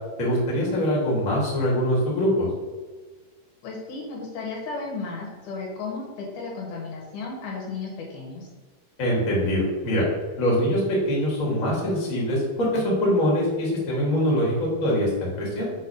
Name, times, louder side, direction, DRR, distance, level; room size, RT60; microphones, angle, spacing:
voice 1, 0.2-2.5 9.0-10.0 10.4-14.5 14.8-15.7, equal, 30° left, -4 dB, 2.0 m, -23 dB
voice 2, 3.6-8.5, left 4 dB, 80° left, -1 dB, 2.8 m, -34 dB
6.4 x 4.1 x 5.4 m, 1.3 s
omnidirectional pair, 3.6 m